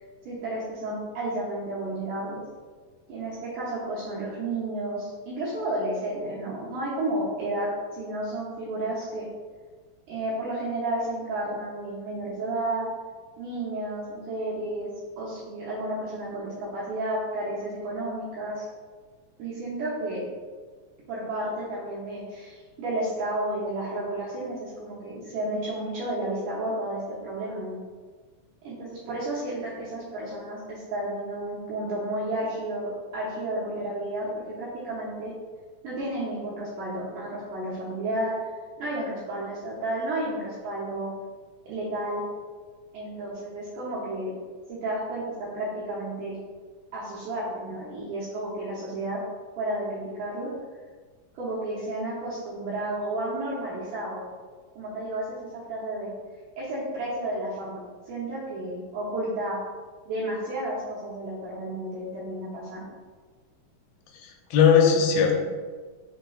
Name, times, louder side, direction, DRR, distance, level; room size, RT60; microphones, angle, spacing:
voice 1, 0.3-2.4 3.1-9.3 10.1-12.8 13.4-14.9 15.2-18.6 19.4-20.2 21.1-27.8 28.6-35.3 35.8-38.5 38.8-41.1 41.7-42.2 42.9-44.3 44.7-46.4 46.9-49.2 49.6-50.5 51.3-54.2 54.8-56.1 56.6-57.8 58.1-59.6 60.1-62.8, right 1 dB, 75° right, -8 dB, 2.0 m, -32 dB
voice 2, 64.2-65.4, left 7 dB, 85° left, 2 dB, 2.4 m, -19 dB
6.1 x 3.2 x 2.3 m, 1.5 s
omnidirectional pair, 4.2 m